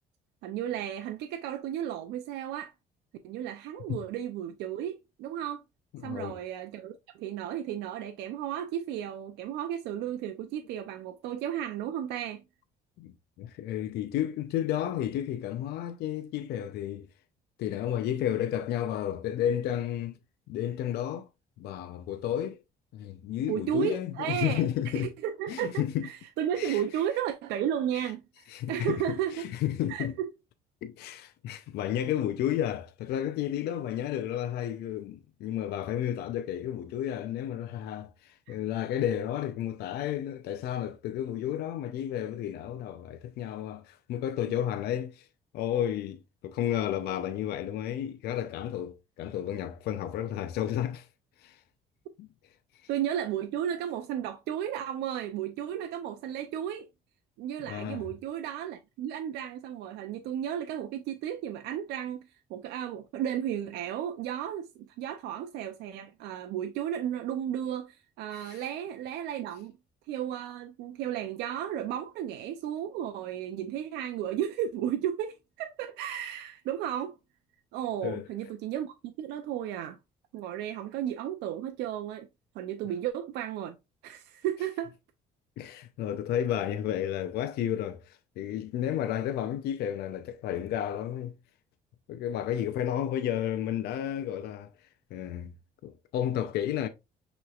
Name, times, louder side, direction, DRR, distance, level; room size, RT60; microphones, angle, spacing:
voice 1, 0.4-2.7 3.2-5.6 6.0-12.4 23.5-29.5 29.9-30.3 38.5-38.6 44.4-44.5 52.9-56.9 57.4-69.7 70.1-77.1 77.7-80.0 80.3-82.3 82.5-83.8 84.0-84.9, right 10 dB, 85° right, 0.5 m, -34 dB
voice 2, 6.0-6.4 13.0-17.1 17.6-20.2 20.5-21.3 21.6-22.6 22.9-25.1 25.5-26.1 26.6-26.8 27.9-28.1 28.5-30.1 30.8-45.3 45.5-51.1 51.4-51.6 52.2-52.3 57.6-58.1 68.3-68.6 78.0-78.2 85.6-91.4 92.1-94.7 95.1-95.5 95.8-96.9, left 11 dB, 75° left, 0.5 m, -32 dB
6.1 x 3.1 x 2.3 m
cardioid pair, 110°, 17 cm